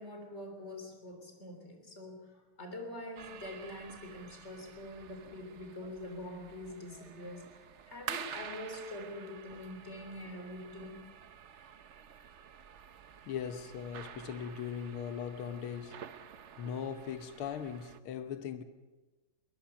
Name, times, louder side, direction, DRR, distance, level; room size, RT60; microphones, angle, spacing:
voice 1, 0.0-11.0, left 1 dB, 30° left, 3.8 m, -45 dB
sound 1, 3.2-18.0, right 8 dB, 80° right, 0.6 m, -49 dB
voice 2, 13.3-16.0 16.6-18.6, left 8 dB, 85° left, 1.9 m, -39 dB
23.0 x 19.5 x 5.9 m
omnidirectional pair, 2.3 m